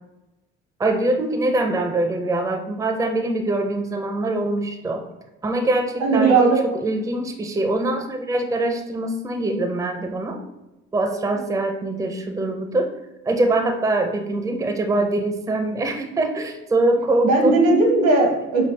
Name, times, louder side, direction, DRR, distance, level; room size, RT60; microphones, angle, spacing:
voice 1, 0.8-5.1 5.4-10.4 10.9-12.9 13.3-17.6, right 2 dB, 10° right, 4 dB, 0.4 m, -23 dB
voice 2, 6.0-6.6 17.2-18.7, right 3 dB, 85° right, 1 dB, 1.1 m, -17 dB
5.2 x 2.3 x 3.2 m, 0.99 s
cardioid pair, 90°, 30 cm